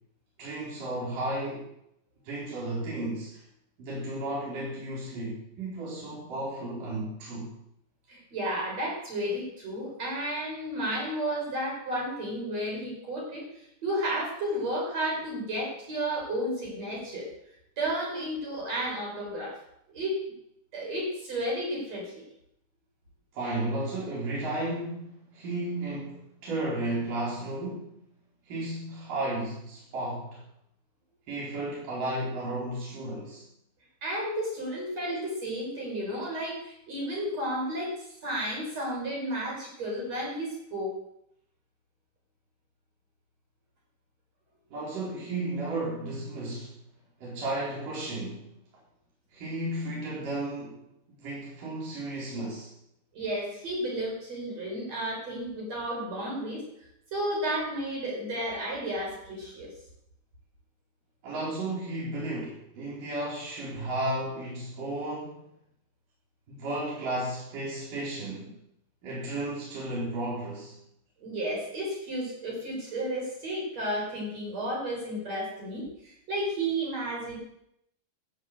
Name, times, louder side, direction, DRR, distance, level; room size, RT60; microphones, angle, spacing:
voice 1, 0.4-1.7 2.3-3.4 3.8-7.5 23.3-28.0 28.5-30.4 31.3-33.5 44.7-46.7 47.2-48.5 49.3-50.8 51.2-52.7 61.2-65.5 66.5-68.5 69.0-70.8, right 1 dB, 60° right, -6 dB, 5.7 m, -33 dB
voice 2, 8.1-17.3 17.8-19.6 19.9-20.2 20.7-22.1 34.0-40.9 53.1-56.6 57.1-59.7 71.2-77.4, right 1 dB, 45° right, -3 dB, 6.8 m, -32 dB
14.5 x 8.5 x 8.1 m, 0.77 s
omnidirectional pair, 4.4 m